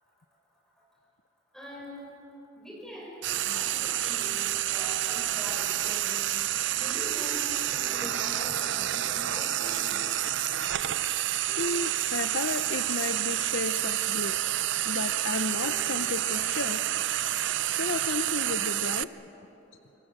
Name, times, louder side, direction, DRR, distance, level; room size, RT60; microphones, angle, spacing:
voice 1, 1.5-2.2 2.6-6.3 6.7-10.0, equal, ahead, -4 dB, 6.6 m, -43 dB
Frying (food), 3.2-19.0, right 13 dB, 60° right, 0.5 m, -29 dB
sound 1, 3.7-14.5 14.9-17.1, right 1 dB, 35° right, 3.4 m, -52 dB
voice 2, 11.6-14.4 14.8-16.8 17.7-19.1 19.4-19.5, left 3 dB, 70° left, 8 dB, 0.7 m, -33 dB
27.0 x 23.5 x 7.5 m, 3.0 s
head